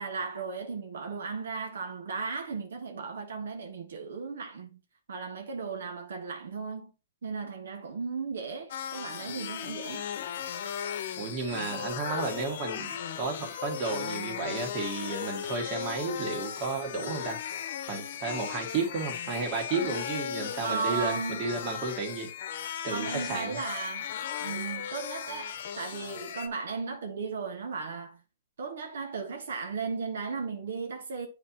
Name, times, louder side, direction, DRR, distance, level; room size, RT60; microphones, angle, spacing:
voice 1, 0.0-4.8 5.1-6.9 7.2-10.0 20.6-21.5 22.9-28.2 28.6-31.3, right 4 dB, 80° right, 1.3 m, -36 dB
sound 1, 8.7-26.5, left 9 dB, 60° left, 0.8 m, -37 dB
voice 2, 11.2-17.4 17.9-22.3 22.8-23.6, right 4 dB, 35° right, 1.9 m, -33 dB
7.7 x 4.5 x 2.9 m
hypercardioid pair, 145°, 0 cm